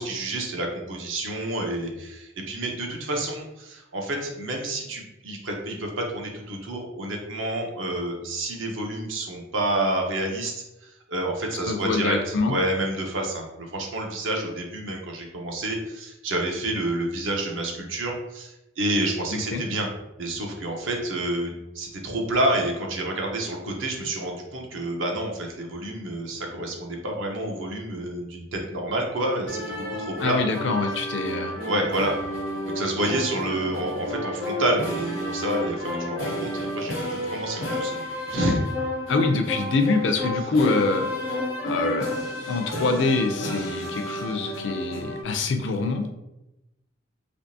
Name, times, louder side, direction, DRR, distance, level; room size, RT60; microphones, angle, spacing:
voice 1, 0.0-10.5 11.1-19.9 20.2-30.4 31.6-32.2 32.6-38.0 38.3-38.6, right 1 dB, 70° right, 1 dB, 0.7 m, -29 dB
voice 2, 11.7-12.5 19.3-19.6 30.2-31.6 39.1-42.1 42.5-46.1, left 3 dB, 60° left, 6 dB, 0.4 m, -25 dB
sound 1, 29.5-45.2, left 1 dB, 85° left, 0.9 m, -31 dB
3.4 x 2.8 x 2.6 m, 0.94 s
head